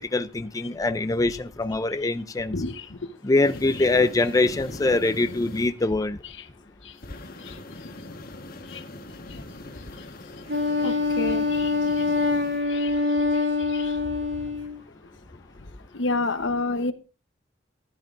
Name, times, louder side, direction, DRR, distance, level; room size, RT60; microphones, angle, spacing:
voice 1, 0.0-2.5 3.2-6.2, left 2 dB, 20° left, 11 dB, 0.4 m, -23 dB
voice 2, 2.5-2.8 8.7-8.8 10.8-11.7 12.7-12.9 13.7-13.9 15.9-16.9, left 2 dB, 80° left, 11 dB, 1.0 m, -28 dB
sound 1, 3.4-5.7 7.0-12.6, left 2 dB, 55° left, 1.3 m, -41 dB
Wind instrument woodwind instrument, 10.5-14.8, left 3 dB, 90° right, 2.0 m, -25 dB
13.5 x 11.5 x 2.5 m, 0.33 s
head